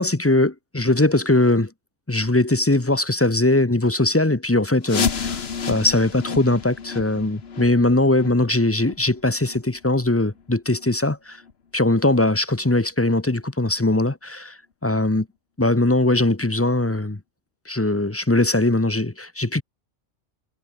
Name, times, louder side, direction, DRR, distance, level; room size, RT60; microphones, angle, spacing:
voice 1, 0.0-1.7 2.1-5.4 5.7-11.4 11.7-14.5 14.8-15.3 15.6-17.2 17.7-19.6, left 2 dB, 10° left, 0.9 m, -20 dB
sound 1, 4.8-10.4 10.8-10.9 11.4-11.5 12.1-12.2 12.8-12.9, left 6 dB, 55° left, 1.5 m, -31 dB
omnidirectional pair, 1.3 m